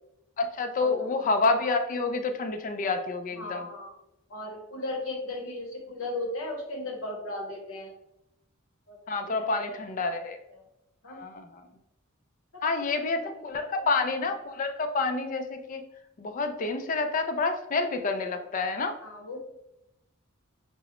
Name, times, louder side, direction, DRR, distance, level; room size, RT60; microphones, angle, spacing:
voice 1, 0.4-3.7 9.1-10.4 11.1-11.7 12.6-15.8 16.2-19.0, left 3 dB, 40° left, 7 dB, 0.3 m, -28 dB
voice 2, 3.4-4.0 4.3-7.9 8.9-9.0 9.4-9.7 10.1-10.2 11.0-11.3 12.5-12.7 13.5-13.9 19.0-19.4, left 2 dB, 70° left, 1 dB, 0.9 m, -36 dB
4.7 x 2.0 x 2.9 m, 0.86 s
head